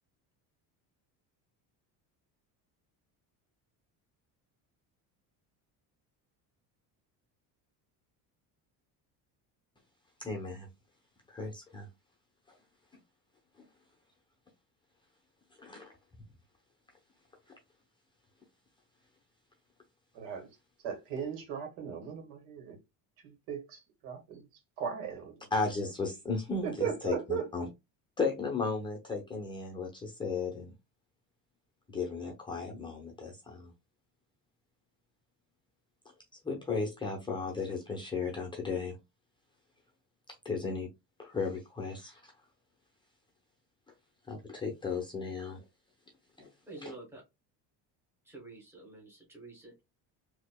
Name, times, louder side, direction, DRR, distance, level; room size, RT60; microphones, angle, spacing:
voice 1, 10.2-10.7 11.3-11.9 12.5-12.6 15.6-15.9 25.5-27.6 28.2-30.7 31.9-33.7 36.4-39.0 40.4-40.9 41.2-42.2 44.3-45.6 46.4-46.5 46.8-46.9, left 4 dB, 10° left, 0.7 m, -35 dB
voice 2, 20.1-20.6 20.8-22.8 23.2-25.5 26.6-27.5, right 8 dB, 90° right, 1.7 m, -38 dB
voice 3, 46.7-47.2 48.2-49.8, right 2 dB, 5° right, 1.4 m, -48 dB
4.2 x 2.9 x 2.2 m
cardioid pair, 170°, 41 cm